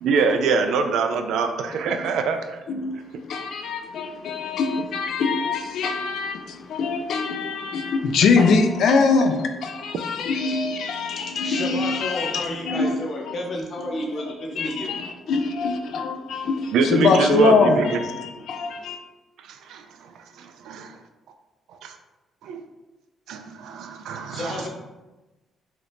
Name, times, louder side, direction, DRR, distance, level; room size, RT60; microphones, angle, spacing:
voice 1, 0.0-2.6 16.7-18.0 19.7-19.8 20.4-21.0 21.8-22.0 22.4-22.6 23.3-24.7, right 5 dB, 80° right, 6 dB, 0.3 m, -24 dB
voice 2, 2.7-3.0 3.3-13.0 13.3-13.4 14.3-19.0, left 4 dB, 70° left, 5 dB, 0.3 m, -23 dB
voice 3, 11.1-14.9 24.3-24.7, left 1 dB, 50° left, 0 dB, 0.7 m, -31 dB
2.8 x 2.5 x 3.3 m, 1.1 s
cardioid pair, 90°, 0 cm